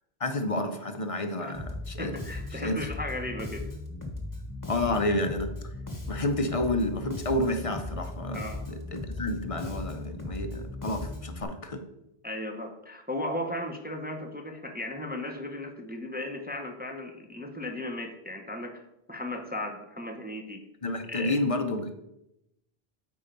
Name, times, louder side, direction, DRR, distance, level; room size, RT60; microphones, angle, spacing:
voice 1, 0.2-2.1 2.5-2.9 4.6-5.5 6.1-11.8 20.8-22.1, left 1 dB, 40° left, 7 dB, 0.7 m, -30 dB
Bass guitar, 1.5-11.4, left 2 dB, 20° left, 1.1 m, -37 dB
voice 2, 2.0-3.6 4.7-4.9 8.3-8.7 12.2-18.8 19.1-20.6 21.1-21.4, left 1 dB, 10° right, 3 dB, 0.7 m, -36 dB
8.4 x 4.6 x 5.2 m, 0.86 s
omnidirectional pair, 1.0 m